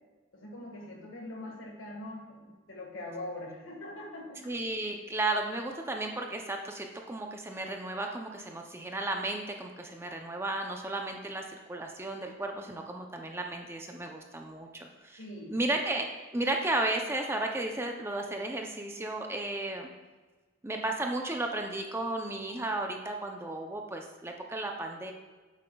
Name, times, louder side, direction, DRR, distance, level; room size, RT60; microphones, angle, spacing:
voice 1, 0.3-4.5 15.2-15.6, left 1 dB, 70° left, 0 dB, 1.7 m, -42 dB
voice 2, 4.4-15.2 15.5-16.1 16.3-19.9 20.6-25.1, right 2 dB, 10° right, 2 dB, 0.5 m, -34 dB
8.9 x 7.4 x 2.3 m, 1.3 s
head